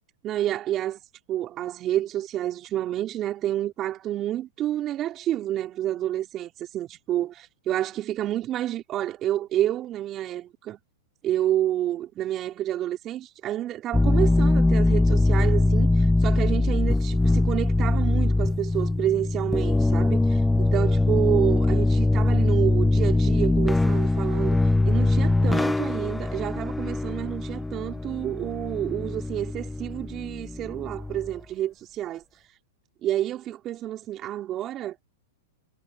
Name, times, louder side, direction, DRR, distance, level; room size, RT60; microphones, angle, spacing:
voice 1, 0.2-1.0 1.3-10.8 11.2-24.6 24.8-32.2 33.0-35.0, right 12 dB, 35° right, 3.7 m, -29 dB
sound 1, 13.9-31.3, left 2 dB, 5° left, 0.9 m, -22 dB
hypercardioid pair, 115°, 0 cm